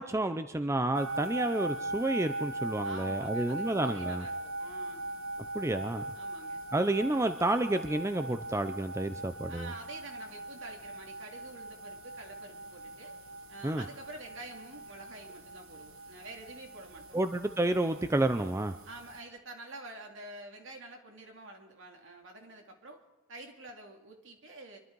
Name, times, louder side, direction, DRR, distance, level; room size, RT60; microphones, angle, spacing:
voice 1, 0.0-4.2 5.5-6.0 6.7-9.7 13.6-13.8 17.1-18.7, right 2 dB, 15° right, 10 dB, 0.5 m, -30 dB
sound 1, 0.9-19.2, right 2 dB, 85° right, 1.2 m, -40 dB
voice 2, 2.8-5.1 6.2-6.6 9.5-13.1 13.5-17.2 18.9-23.0 23.3-24.8, right 2 dB, 70° right, 2 dB, 2.5 m, -48 dB
25.5 x 12.0 x 4.6 m, 1.1 s
head